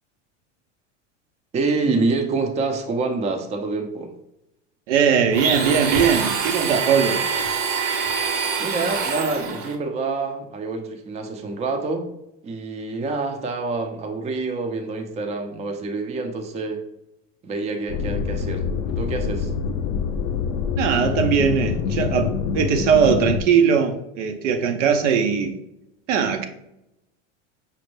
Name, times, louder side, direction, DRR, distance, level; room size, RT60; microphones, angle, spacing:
voice 1, 1.5-4.1 8.6-12.1 12.4-16.8 17.4-18.7 19.0-19.5, right 3 dB, 20° right, 0.5 m, -26 dB
voice 2, 4.9-7.2 20.8-25.5 26.1-26.5, right 7 dB, 80° right, 0.6 m, -20 dB
Domestic sounds home sounds, 5.3-9.8, right 5 dB, 50° right, 0.8 m, -25 dB
sound 1, 17.9-23.4, left 6 dB, 60° left, 0.5 m, -25 dB
5.3 x 2.1 x 3.0 m
hypercardioid pair, 105°, 37 cm